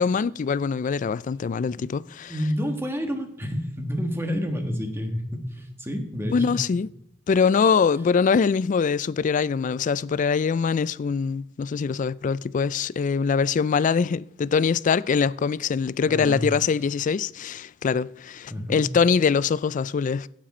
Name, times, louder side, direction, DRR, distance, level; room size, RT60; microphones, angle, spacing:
voice 1, 0.0-2.3 6.3-6.9 7.3-20.3, left 5 dB, 40° left, 0.3 m, -23 dB
voice 2, 1.7-6.6 16.1-16.5 18.5-18.9, equal, 15° right, 1.6 m, -29 dB
16.0 x 7.5 x 4.3 m
head